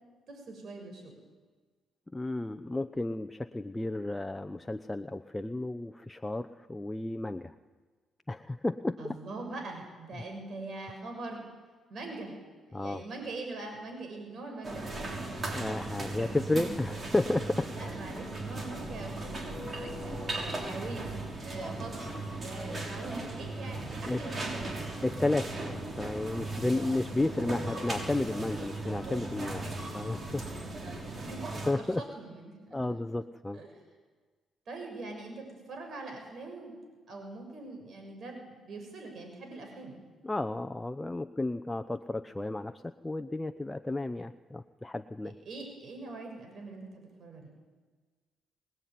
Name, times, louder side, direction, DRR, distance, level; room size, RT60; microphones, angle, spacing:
voice 1, 0.3-1.2 9.0-11.5 11.9-12.4 12.7-15.3 17.6-21.1 21.4-22.0 22.3-25.1 26.5-27.1 30.3-32.8 33.5-33.7 34.7-36.8 37.1-40.0 45.4-47.5, right 2 dB, 55° right, 3 dB, 6.7 m, -43 dB
voice 2, 2.1-7.5 8.3-9.0 12.7-13.0 15.5-17.9 24.0-24.2 25.0-30.4 31.7-32.0 32.7-33.6 40.2-45.3, left 2 dB, 10° left, 8 dB, 0.9 m, -32 dB
sound 1, 14.6-31.7, right 2 dB, 35° right, 6.1 m, -37 dB
25.0 x 20.0 x 9.5 m, 1.4 s
cardioid pair, 90°, 0 cm